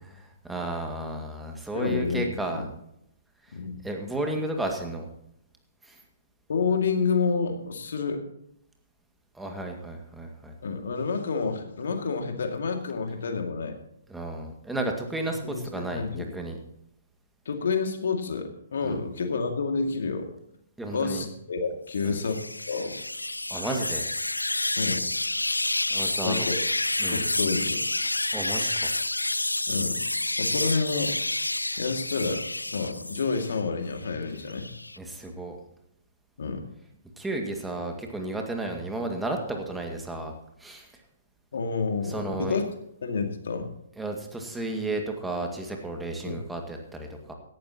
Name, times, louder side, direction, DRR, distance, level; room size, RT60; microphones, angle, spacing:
voice 1, 0.2-2.7 3.5-3.6 3.8-5.1 5.8-6.0 9.3-10.5 14.1-16.6 18.8-19.0 20.8-21.3 22.0-22.2 23.5-24.1 25.9-26.4 27.0-27.3 28.3-28.9 35.0-35.6 37.2-40.3 40.6-40.9 42.0-42.6 44.0-47.3, right 2 dB, 5° right, 2 dB, 2.0 m, -33 dB
voice 2, 1.7-2.7 3.5-3.8 6.5-8.2 10.6-13.8 15.4-16.4 17.5-20.3 20.9-22.4 22.7-22.9 24.8-25.1 26.2-26.6 27.1-27.8 29.7-30.0 30.4-31.1 31.8-34.7 36.4-36.6 41.5-42.7 43.0-43.7 46.2-46.4, left 4 dB, 60° left, 4 dB, 2.3 m, -29 dB
sound 1, 21.9-33.6 34.0-35.0, left 2 dB, 90° left, 0.4 m, -29 dB
17.0 x 12.0 x 3.0 m, 0.76 s
figure-of-eight pair, 125°, 0 cm